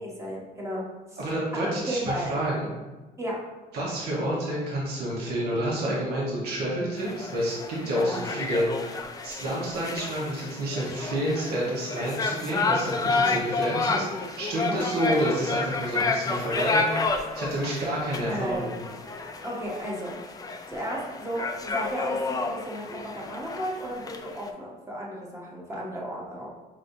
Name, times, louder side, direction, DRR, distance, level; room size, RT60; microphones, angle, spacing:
voice 1, 0.0-1.2 1.5-2.3 3.2-3.5 7.9-8.3 13.2-13.4 14.7-14.8 18.2-18.7 19.4-20.3 20.7-26.5, equal, 15° right, -3 dB, 1.1 m, -34 dB
voice 2, 1.2-2.7 3.7-18.8, right 1 dB, 70° right, -5 dB, 1.2 m, -29 dB
sound 1, 7.0-24.5, left 4 dB, 20° left, 0.4 m, -31 dB
5.4 x 3.1 x 2.7 m, 1.2 s
cardioid pair, 110°, 17 cm